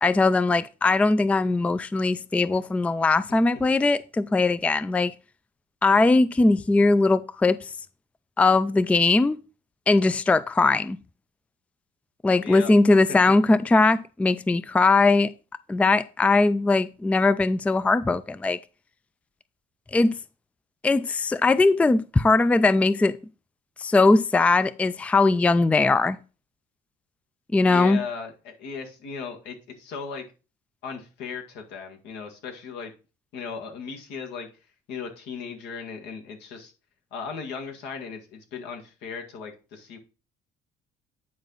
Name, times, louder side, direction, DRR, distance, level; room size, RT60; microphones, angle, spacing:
voice 1, 0.0-5.1 5.8-7.6 8.4-9.4 9.9-11.0 12.2-15.3 15.7-18.6 19.9-20.2 20.8-23.2 23.8-26.2 27.5-28.0, left 3 dB, 10° left, 0.3 m, -20 dB
voice 2, 12.4-13.2 27.6-30.2 30.8-32.9 33.3-34.5 34.9-36.7 37.1-40.0, left 5 dB, 85° left, 1.9 m, -37 dB
9.5 x 4.5 x 4.0 m
cardioid pair, 110°, 17 cm